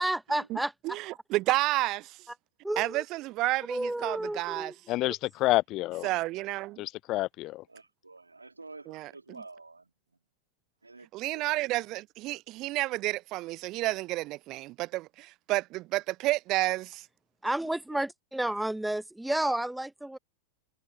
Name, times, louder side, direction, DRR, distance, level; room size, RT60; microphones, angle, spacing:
voice 1, 0.0-0.7 2.6-3.0 3.7-4.7 17.4-20.2, right 1 dB, 5° right, 1.3 m, -31 dB
voice 2, 0.8-2.2 2.8-4.7 6.0-6.8 8.9-9.1 11.1-17.0, right 19 dB, 40° right, 0.8 m, -30 dB
voice 3, 4.9-6.1 6.8-7.6, left 18 dB, 40° left, 0.5 m, -28 dB
voice 4, 7.7-10.2 10.8-11.8 17.9-18.0, right 3 dB, 80° right, 3.5 m, -50 dB
figure-of-eight pair, 90°, 0 cm